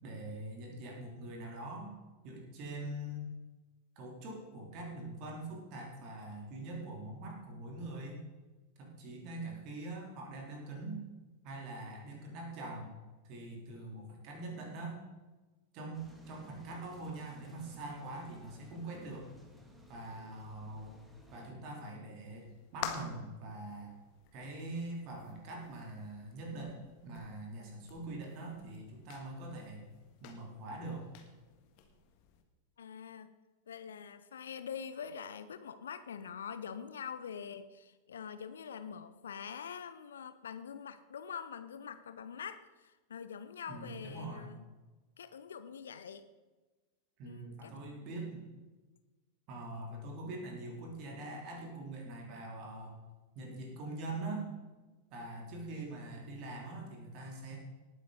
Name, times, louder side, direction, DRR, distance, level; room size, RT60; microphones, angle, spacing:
voice 1, 0.0-1.9 2.2-3.3 3.9-8.2 8.8-11.0 11.4-13.0 13.2-15.0 15.7-19.3 19.9-21.0 21.3-24.0 24.3-29.8 30.2-31.1 43.7-44.5 47.2-48.5 49.5-52.9 53.3-54.5 55.1-57.6, right 2 dB, 40° right, 0 dB, 3.3 m, -43 dB
sound 1, 15.9-21.5, left 1 dB, 10° right, 2.5 m, -58 dB
sound 2, 22.3-32.4, left 9 dB, 45° left, 1.7 m, -50 dB
voice 2, 32.8-33.3 33.7-44.6 45.2-46.3 47.2-48.1, left 7 dB, 65° left, 12 dB, 0.7 m, -45 dB
19.0 x 9.4 x 4.0 m, 1.2 s
figure-of-eight pair, 90°, 0 cm